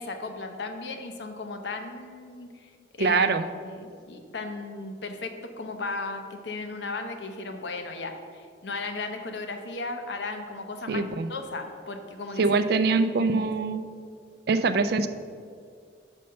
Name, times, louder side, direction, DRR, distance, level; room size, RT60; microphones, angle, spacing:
voice 1, 0.0-2.7 3.0-3.2 3.6-11.0 11.3-12.6 13.0-13.5, left 3 dB, 70° left, 5 dB, 0.7 m, -36 dB
voice 2, 3.0-3.5 10.9-11.3 12.4-13.8 14.5-15.1, right 4 dB, 55° right, 10 dB, 0.4 m, -23 dB
5.6 x 5.3 x 6.4 m, 2.2 s
head